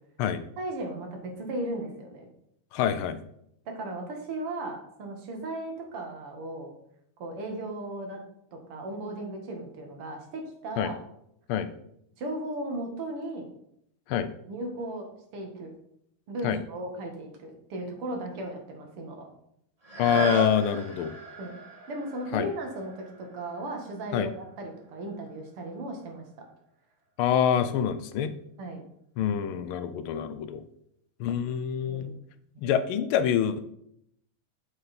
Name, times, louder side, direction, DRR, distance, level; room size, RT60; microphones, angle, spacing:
voice 1, 0.6-2.3 3.7-6.7 7.2-8.2 8.5-10.9 12.2-13.5 14.5-15.1 15.3-15.7 16.3-19.3 21.4-21.5 21.9-26.5 28.6-28.8 31.9-32.1 32.5-32.7, right 1 dB, 90° right, 3 dB, 2.6 m, -36 dB
voice 2, 2.7-3.2 10.8-10.9 11.5-11.7 14.1-14.3 16.4-16.6 20.0-21.2 22.3-22.5 24.1-24.3 27.2-28.3 29.2-30.6 31.2-32.1 32.6-33.7, left 8 dB, 80° left, 12 dB, 1.5 m, -26 dB
sound 1, 19.8-25.5 26.0-26.1, right 1 dB, 20° right, 1.3 m, -37 dB
7.8 x 7.8 x 4.2 m, 0.73 s
omnidirectional pair, 2.4 m